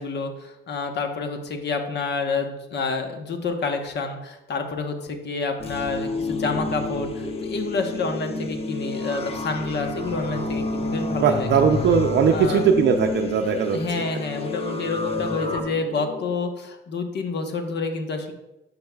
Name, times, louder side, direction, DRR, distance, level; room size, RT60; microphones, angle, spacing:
voice 1, 0.0-11.5 12.3-12.6 13.7-18.3, left 4 dB, 60° left, 5 dB, 1.1 m, -28 dB
sound 1, 5.6-15.6, left 3 dB, 30° left, 0.8 m, -30 dB
sound 2, 6.3-16.3, left 1 dB, 80° left, 2.3 m, -38 dB
voice 2, 11.2-13.8, right 7 dB, 60° right, 4 dB, 0.5 m, -19 dB
10.5 x 5.3 x 2.3 m, 0.94 s
cardioid pair, 90°, 20 cm